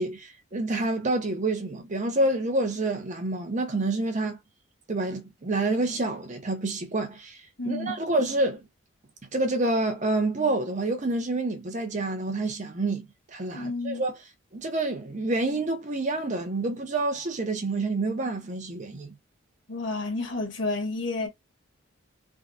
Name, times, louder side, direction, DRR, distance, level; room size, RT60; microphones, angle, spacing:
voice 1, 0.0-4.4 4.9-8.6 9.3-13.0 13.3-14.2 14.5-19.1, right 2 dB, 35° right, 0.7 m, -28 dB
voice 2, 7.6-8.0 13.5-14.0 19.7-21.3, left 3 dB, 60° left, 1.6 m, -30 dB
3.5 x 2.2 x 2.5 m
head